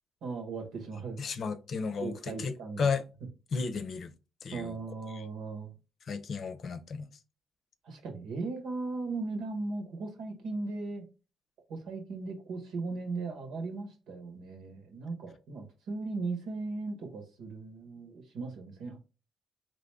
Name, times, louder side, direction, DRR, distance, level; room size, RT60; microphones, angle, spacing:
voice 1, 0.2-1.2 2.0-2.9 4.5-5.7 7.8-11.1 11.7-19.0, right 3 dB, 85° right, 1.5 m, -37 dB
voice 2, 1.2-3.0 3.5-4.1 4.4-4.7 5.1-5.2 6.1-7.1, left 5 dB, 55° left, 0.6 m, -33 dB
4.0 x 3.0 x 3.4 m
cardioid pair, 90°, 0 cm